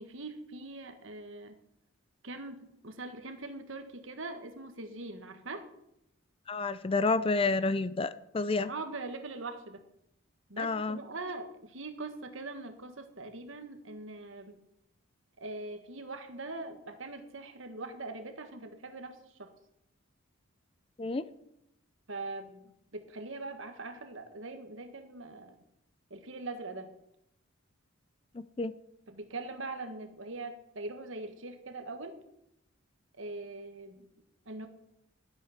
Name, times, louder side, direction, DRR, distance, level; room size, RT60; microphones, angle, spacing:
voice 1, 0.0-1.6 2.2-5.7 8.7-9.8 10.5-14.6 15.4-19.5 22.1-25.6 26.1-27.0 29.1-32.2 33.2-34.0 34.4-34.7, right 2 dB, 65° right, 7 dB, 1.5 m, -42 dB
voice 2, 6.5-8.7 10.6-11.0 21.0-21.2 28.6-28.7, left 3 dB, 25° left, 15 dB, 0.4 m, -29 dB
12.5 x 8.2 x 5.8 m, 0.80 s
head